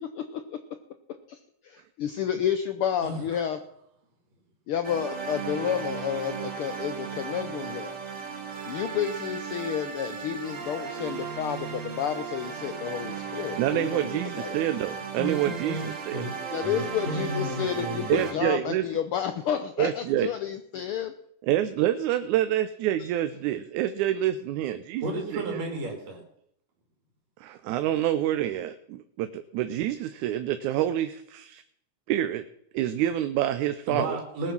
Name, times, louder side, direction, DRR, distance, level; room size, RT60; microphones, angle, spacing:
voice 1, 0.0-0.6 1.3-3.6 4.7-8.0 8.7-14.6 16.5-21.1, left 9 dB, 75° left, 9 dB, 1.2 m, -31 dB
sound 1, 4.8-18.3, right 6 dB, 35° right, 1.4 m, -36 dB
voice 2, 13.6-16.3 18.1-18.9 19.8-20.3 21.4-25.1 25.3-25.6 27.4-31.6 32.1-32.5 32.7-34.2, right 12 dB, 90° right, 10 dB, 2.1 m, -27 dB
voice 3, 15.1-18.3 25.0-26.2 33.9-34.5, right 1 dB, 65° right, 1 dB, 3.7 m, -33 dB
19.5 x 7.3 x 6.0 m, 0.73 s
omnidirectional pair, 3.3 m